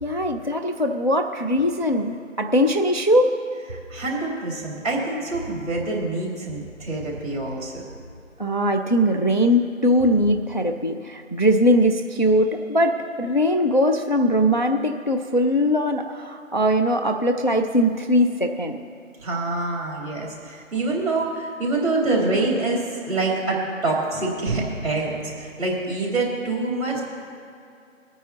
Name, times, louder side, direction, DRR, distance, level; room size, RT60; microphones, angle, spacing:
voice 1, 0.0-3.3 8.4-18.8, equal, 35° left, 4 dB, 0.4 m, -21 dB
voice 2, 3.9-7.8 19.2-27.0, right 2 dB, 30° right, -3 dB, 3.3 m, -26 dB
23.5 x 9.3 x 2.9 m, 2.5 s
figure-of-eight pair, 165°, 40 cm